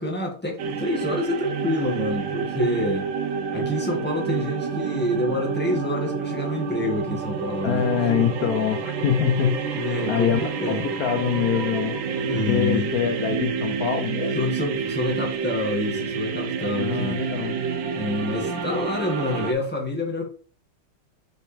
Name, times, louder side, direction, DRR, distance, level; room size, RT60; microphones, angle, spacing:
voice 1, 0.0-3.0 3.5-7.8 8.2-8.5 9.7-10.8 12.1-12.9 14.3-17.2 17.9-20.3, left 1 dB, 5° left, 1.7 m, -27 dB
sound 1, 0.6-19.5, right 5 dB, 65° right, 1.3 m, -29 dB
sound 2, 7.1-12.7, right 4 dB, 40° right, 2.5 m, -41 dB
voice 2, 7.6-9.8 10.1-12.0 12.5-14.4 16.7-17.5, left 9 dB, 85° left, 0.8 m, -24 dB
6.0 x 5.4 x 3.4 m
omnidirectional pair, 2.3 m